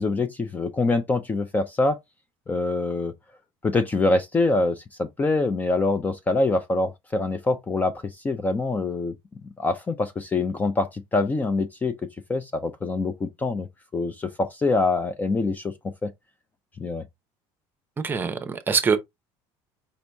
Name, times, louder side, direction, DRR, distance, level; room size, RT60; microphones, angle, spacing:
voice 1, 0.0-2.0 2.5-3.1 3.6-9.1 9.6-11.9 12.3-13.7 13.9-15.7 16.0-16.1 16.8-17.0, left 3 dB, 15° left, 0.5 m, -25 dB
voice 2, 18.0-19.0, right 5 dB, 20° right, 0.8 m, -23 dB
5.2 x 2.8 x 3.4 m
cardioid pair, 145°, 11 cm